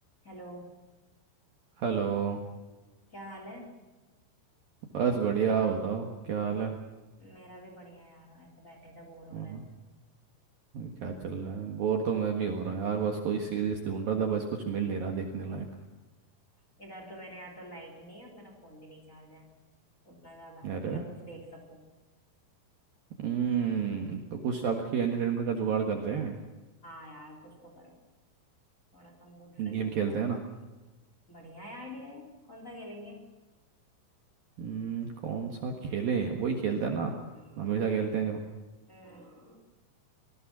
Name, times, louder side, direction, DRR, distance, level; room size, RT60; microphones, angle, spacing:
voice 1, 0.2-0.8 3.1-3.7 7.2-9.7 16.8-19.4 20.0-21.9 26.8-28.0 28.9-30.2 31.3-33.3 37.3-37.7 38.9-39.6, equal, 20° left, 2 dB, 3.2 m, -48 dB
voice 2, 1.8-2.4 4.9-6.7 9.3-9.6 10.7-15.7 20.6-21.1 23.2-26.4 29.6-30.4 34.6-37.2 37.6-38.4, right 6 dB, 60° right, 3 dB, 2.7 m, -30 dB
25.5 x 20.5 x 6.2 m, 1.2 s
omnidirectional pair, 5.9 m